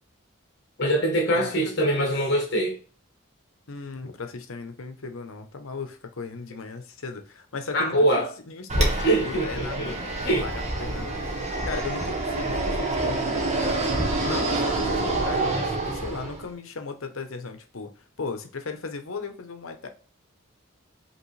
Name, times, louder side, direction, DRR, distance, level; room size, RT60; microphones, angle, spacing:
voice 1, 0.8-2.8 7.7-8.3 8.8-9.9 10.2-10.5, right 1 dB, 50° left, 1.1 m, -23 dB
voice 2, 1.3-2.1 3.7-10.0 10.4-10.5 10.8-11.2 11.7-19.9, left 4 dB, 75° left, 0.8 m, -37 dB
Fixed-wing aircraft airplane, 8.7-16.5, right 2 dB, 35° right, 0.9 m, -27 dB
5.1 x 3.0 x 3.2 m
head